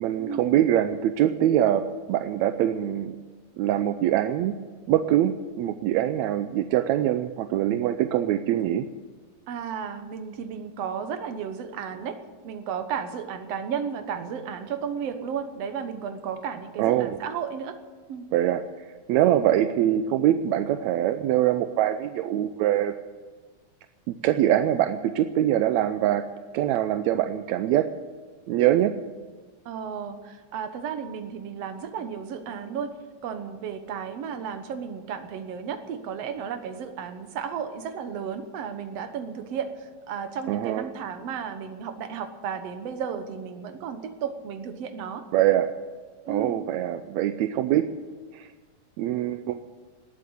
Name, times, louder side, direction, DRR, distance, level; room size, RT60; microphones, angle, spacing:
voice 1, 0.0-3.2 3.6-4.6 4.9-8.9 16.8-17.2 18.3-22.9 24.1-26.3 26.5-27.9 28.5-28.9 40.5-40.8 45.3-45.7 46.3-47.8 48.3-48.5 49.0-49.6, right 12 dB, 80° right, 9 dB, 1.7 m, -23 dB
voice 2, 9.5-12.2 12.4-17.8 18.1-18.3 29.7-33.0 33.2-45.3 46.3-46.6, right 7 dB, 60° right, 8 dB, 2.1 m, -33 dB
19.0 x 8.5 x 8.7 m, 1.4 s
omnidirectional pair, 3.7 m